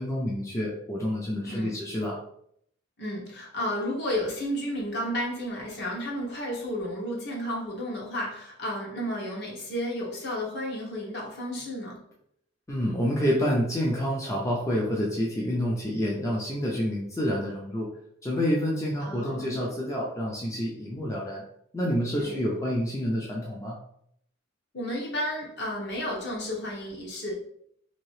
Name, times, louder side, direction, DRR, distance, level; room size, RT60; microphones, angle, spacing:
voice 1, 0.0-2.2 12.7-17.9 18.2-21.4 21.7-23.8, equal, 15° left, -4 dB, 0.4 m, -28 dB
voice 2, 1.4-1.8 3.0-12.0 19.0-19.6 22.2-22.5 24.7-27.3, equal, 55° left, -3 dB, 0.9 m, -32 dB
2.8 x 2.7 x 3.1 m, 0.70 s
head